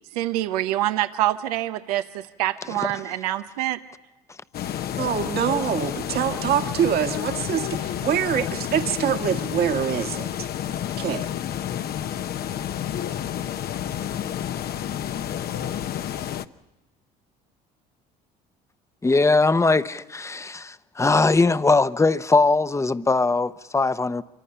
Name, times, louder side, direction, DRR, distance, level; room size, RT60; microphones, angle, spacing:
voice 1, 0.1-3.8, right 14 dB, 90° right, 1.0 m, -26 dB
voice 2, 2.7-3.0 19.0-24.2, left 3 dB, 15° left, 0.9 m, -21 dB
sound 1, 4.5-16.4, left 10 dB, 55° left, 0.9 m, -30 dB
voice 3, 5.0-10.3 11.0-11.3, right 8 dB, 55° right, 1.9 m, -25 dB
27.0 x 24.5 x 5.7 m
supercardioid pair, 80°, 19 cm